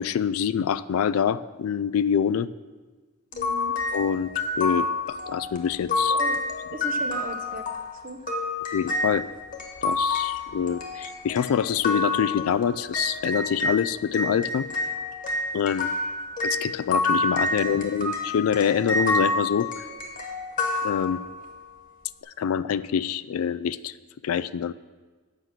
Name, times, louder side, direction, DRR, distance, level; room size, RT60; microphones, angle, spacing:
voice 1, 0.0-2.5 3.9-4.3 4.6-6.2 8.7-9.2 9.8-14.7 15.5-15.9 16.4-19.7 20.8-21.2 22.4-23.9 24.2-24.7, left 8 dB, 80° left, 16 dB, 0.3 m, -25 dB
sound 1, 3.3-13.8 14.1-21.5, left 2 dB, 40° left, 1.3 m, -28 dB
voice 2, 3.3-3.7 6.1-6.4 6.7-7.6 8.0-8.2 17.5-17.8, right 1 dB, 40° right, 6 dB, 0.9 m, -37 dB
8.1 x 6.0 x 7.4 m, 1.4 s
head